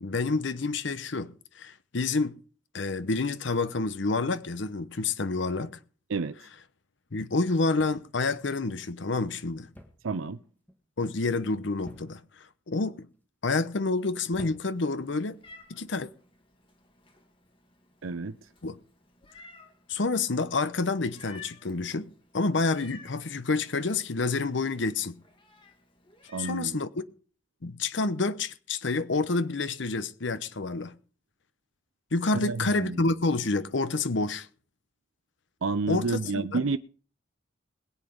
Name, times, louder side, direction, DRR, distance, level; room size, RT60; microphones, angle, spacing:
voice 1, 0.0-2.4 2.7-5.8 7.1-9.7 11.0-13.1 13.4-15.4 15.7-16.1 18.6-18.8 19.9-22.1 22.3-25.2 26.4-27.0 27.6-30.9 32.1-34.5 35.9-36.7, left 3 dB, 65° left, 0.8 m, -28 dB
sound 1, 7.8-8.3 9.7-10.1 10.4-10.8 11.8-12.4 13.1-13.5 14.3-15.0 15.9-16.2, equal, 10° left, 1.8 m, -49 dB
voice 2, 10.0-10.4 18.0-18.3 26.3-26.8 32.3-33.0 35.6-36.8, right 4 dB, 90° right, 0.6 m, -30 dB
Meow, 14.7-26.7, left 4 dB, 25° left, 1.9 m, -54 dB
21.0 x 8.1 x 5.1 m
head